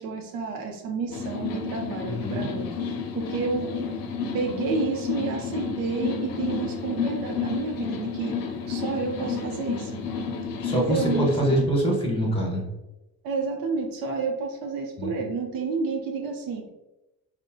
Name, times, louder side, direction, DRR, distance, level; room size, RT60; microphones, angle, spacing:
voice 1, 0.0-3.8 4.3-8.4 8.7-10.0 10.7-11.3 13.2-16.7, right 4 dB, 80° right, 2 dB, 0.6 m, -30 dB
sound 1, 1.1-11.6, left 5 dB, 80° left, 0.6 m, -31 dB
voice 2, 2.1-2.5 10.6-12.7 15.0-15.1, right 1 dB, 15° left, -1 dB, 1.4 m, -24 dB
3.8 x 2.1 x 3.8 m, 1.0 s
cardioid pair, 85°, 34 cm